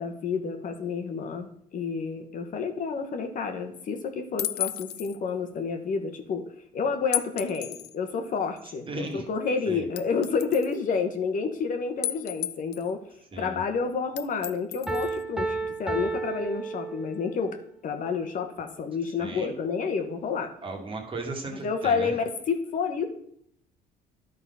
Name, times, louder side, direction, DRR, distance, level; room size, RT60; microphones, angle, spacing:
voice 1, 0.0-6.4 6.7-13.0 13.4-17.5 17.8-20.5 21.6-23.1, left 5 dB, 50° left, 6 dB, 1.1 m, -29 dB
sound 1, 4.4-5.2 7.1-7.9 8.6-8.7 10.0-10.7 12.0-12.9 14.2-15.2, left 14 dB, 75° left, 0.5 m, -32 dB
voice 2, 8.9-9.3 9.7-9.9 13.3-13.6 19.2-19.5 20.6-22.1, right 3 dB, 30° right, 1 dB, 1.9 m, -36 dB
Piano, 14.9-17.4, right 3 dB, 5° right, 0.9 m, -32 dB
11.0 x 4.0 x 5.5 m, 0.68 s
cardioid pair, 110°, 17 cm